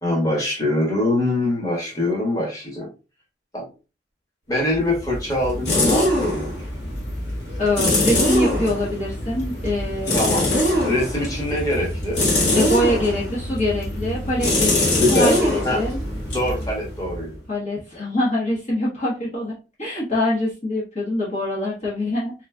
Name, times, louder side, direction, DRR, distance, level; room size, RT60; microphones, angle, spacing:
voice 1, 0.0-2.9 3.5-3.7 4.5-6.5 10.1-10.4 10.8-12.2 15.0-15.4 15.6-15.8 16.3-17.3, left 1 dB, 20° left, -3 dB, 1.3 m, -23 dB
sound 1, 4.7-17.4, left 1 dB, 65° left, 1.4 m, -23 dB
voice 2, 7.6-10.1 12.5-16.0 17.5-22.3, left 1 dB, 40° left, -6 dB, 1.1 m, -24 dB
3.6 x 3.1 x 2.2 m, 0.31 s
head